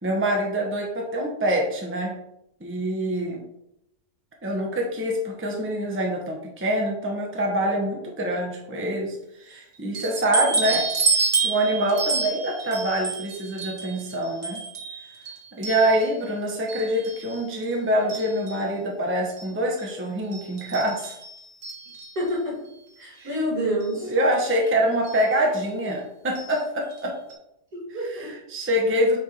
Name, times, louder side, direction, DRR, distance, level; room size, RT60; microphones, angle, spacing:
voice 1, 0.0-2.1 2.6-3.4 4.4-10.9 11.4-14.6 15.5-21.2 23.2-23.4 24.0-27.1 28.1-29.2, right 1 dB, 10° right, 0 dB, 1.0 m, -25 dB
sound 1, 9.9-16.3 16.7-17.7 18.1-18.7 19.4-19.5 19.8-19.9 20.3-22.3 23.3-23.4 23.8-23.9 25.0-25.3 26.4-26.6 26.9-27.0 27.3-27.4, right 4 dB, 50° right, 1.7 m, -29 dB
voice 2, 22.1-22.6 23.0-24.1 27.7-28.3, equal, 70° right, -4 dB, 3.4 m, -28 dB
6.8 x 3.6 x 4.9 m, 0.81 s
omnidirectional pair, 1.7 m